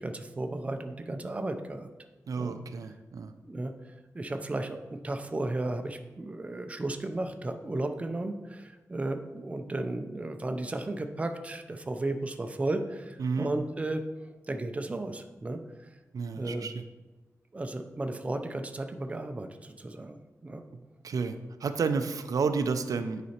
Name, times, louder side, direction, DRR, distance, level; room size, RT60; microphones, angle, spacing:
voice 1, 0.0-1.9 2.4-2.5 3.5-3.7 4.1-14.0 14.5-15.9 16.2-16.7 17.5-20.6, right 2 dB, 20° right, 6 dB, 0.5 m, -34 dB
voice 2, 2.3-3.3 13.2-13.5 16.1-16.7 21.0-23.2, right 5 dB, 80° right, 9 dB, 0.5 m, -31 dB
9.4 x 4.1 x 4.3 m, 1.2 s
wide cardioid pair, 160°, 6 cm